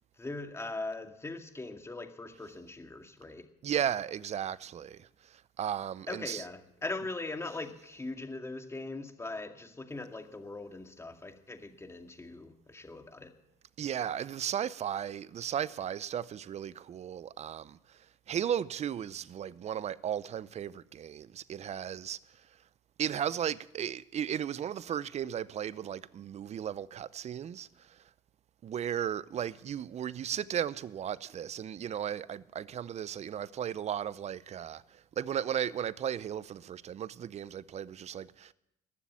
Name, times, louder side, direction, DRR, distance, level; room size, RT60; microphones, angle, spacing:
voice 1, 0.2-3.5 6.1-13.3, left 2 dB, 15° left, 2.1 m, -40 dB
voice 2, 3.6-6.4 13.8-22.5 23.0-28.1 28.6-38.5, right 9 dB, 40° right, 0.6 m, -35 dB
20.0 x 7.3 x 8.4 m
supercardioid pair, 85°, 17 cm